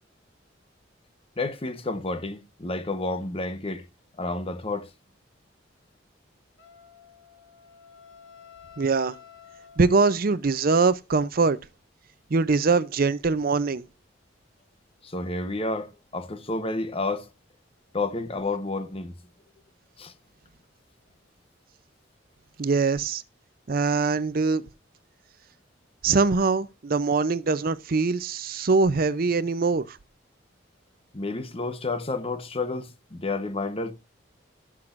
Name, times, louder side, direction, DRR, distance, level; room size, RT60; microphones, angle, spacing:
voice 1, 1.4-3.9 4.2-4.9 15.0-17.3 17.9-19.1 20.0-20.1 31.1-33.9, left 2 dB, 30° left, 0.9 m, -30 dB
Wind instrument woodwind instrument, 6.6-10.6, left 7 dB, 75° left, 1.8 m, -51 dB
voice 2, 8.8-9.2 9.8-11.6 12.3-13.8 22.6-23.2 23.7-24.6 26.0-30.0, right 4 dB, 50° right, 0.5 m, -23 dB
17.5 x 6.1 x 2.5 m
head